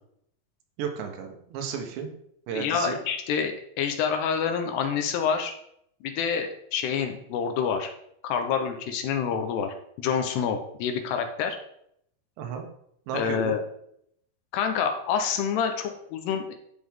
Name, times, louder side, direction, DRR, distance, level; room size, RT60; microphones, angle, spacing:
voice 1, 0.8-2.1 2.5-3.0 12.4-12.7 13.1-13.6, right 6 dB, 80° right, 4 dB, 3.5 m, -33 dB
voice 2, 2.5-5.5 6.0-7.9 8.2-11.6 13.1-13.6 14.5-16.5, left 7 dB, 75° left, 6 dB, 2.8 m, -27 dB
13.0 x 6.0 x 3.7 m, 0.71 s
omnidirectional pair, 5.1 m